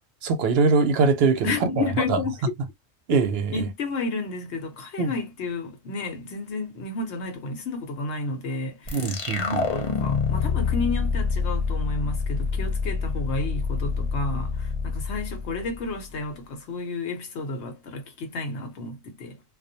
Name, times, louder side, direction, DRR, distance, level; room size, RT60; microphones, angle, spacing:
voice 1, 0.2-1.5 1.8-2.2 3.1-3.7 5.0-5.1 8.9-9.6, right 4 dB, 65° right, 0.8 m, -22 dB
voice 2, 1.4-2.4 3.5-19.4, left 3 dB, 70° left, 1.0 m, -31 dB
sound 1, 8.9-16.2, left 5 dB, 45° left, 0.6 m, -27 dB
2.4 x 2.0 x 2.6 m
omnidirectional pair, 1.2 m